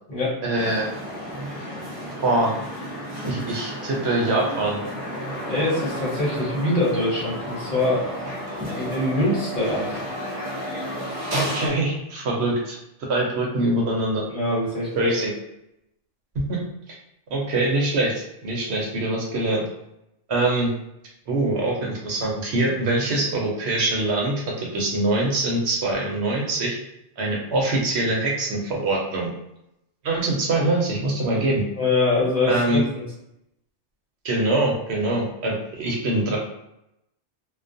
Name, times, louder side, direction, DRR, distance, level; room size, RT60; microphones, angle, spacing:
voice 1, 0.4-0.9 2.2-2.5 3.3-4.8 11.3-12.8 13.1-14.2 15.0-15.3 16.5-16.6 17.3-19.6 20.3-20.7 21.3-26.8 27.2-29.3 30.0-31.6 32.5-32.8 34.2-36.4, right 2 dB, 70° right, -2 dB, 0.8 m, -23 dB
sound 1, 0.6-11.7, equal, 35° right, 0.6 m, -32 dB
voice 2, 5.5-8.1 8.7-10.0 14.3-15.1 31.8-32.8, left 2 dB, 50° left, -6 dB, 1.0 m, -23 dB
2.3 x 2.2 x 2.5 m, 0.83 s
omnidirectional pair, 1.2 m